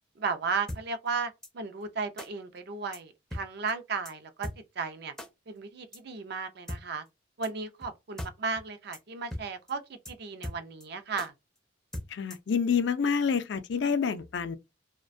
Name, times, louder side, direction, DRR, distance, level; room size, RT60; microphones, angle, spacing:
voice 1, 0.2-4.5 4.8-5.1 5.5-7.0 7.4-11.3, right 5 dB, 55° right, 0.4 m, -35 dB
sound 1, 0.7-0.8 1.4-1.5 2.2-2.3 2.9-3.0 3.3-3.4 3.7-3.8 4.1-4.2 4.4-4.6 5.2-5.3 5.9-6.0 6.7-6.8 7.4-7.5 7.8-7.9 8.2-8.3 8.6-8.7 8.9-9.0 9.3-9.4 9.7-9.8 10.1-10.2 10.4-10.9 11.2-11.3 11.9-12.5, left 1 dB, 5° left, 0.4 m, -38 dB
voice 2, 12.1-14.6, left 6 dB, 60° left, 0.4 m, -28 dB
2.4 x 2.2 x 2.4 m
head